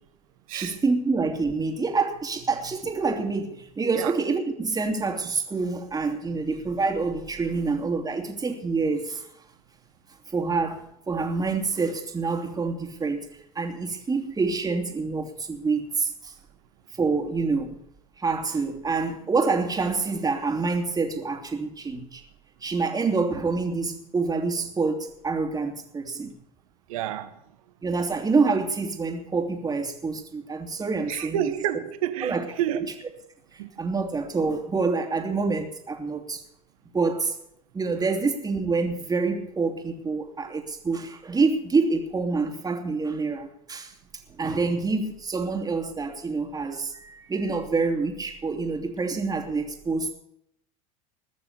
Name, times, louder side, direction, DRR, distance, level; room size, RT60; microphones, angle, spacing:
voice 1, 0.5-9.3 10.3-13.2 13.5-16.3 16.9-17.8 18.2-22.2 22.6-26.3 27.8-31.5 32.2-32.4 33.8-36.4 36.9-37.3 37.7-43.9 44.3-50.1, right 4 dB, 20° right, 3.0 m, -27 dB
voice 2, 26.9-27.4 31.1-32.9 33.6-33.7 40.3-40.4, right 11 dB, 70° right, 1.4 m, -29 dB
20.5 x 6.9 x 7.0 m
hypercardioid pair, 75°, 18 cm